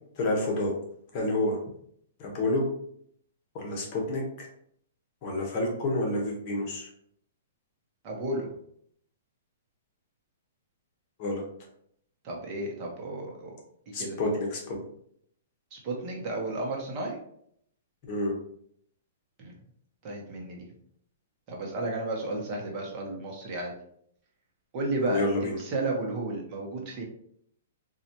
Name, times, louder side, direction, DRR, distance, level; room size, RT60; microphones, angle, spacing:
voice 1, 0.2-0.7 1.1-1.6 2.2-2.6 3.5-4.5 5.2-6.9 11.2-11.4 13.9-14.7 18.1-18.3 25.1-25.6, left 2 dB, 40° left, 0 dB, 1.1 m, -29 dB
voice 2, 8.0-8.5 12.2-13.6 14.0-14.2 15.7-17.2 19.4-19.5 20.0-20.7 21.5-23.7 24.7-27.0, right 2 dB, 35° right, -1 dB, 0.9 m, -33 dB
4.0 x 2.4 x 2.8 m, 0.67 s
hypercardioid pair, 150°, 0 cm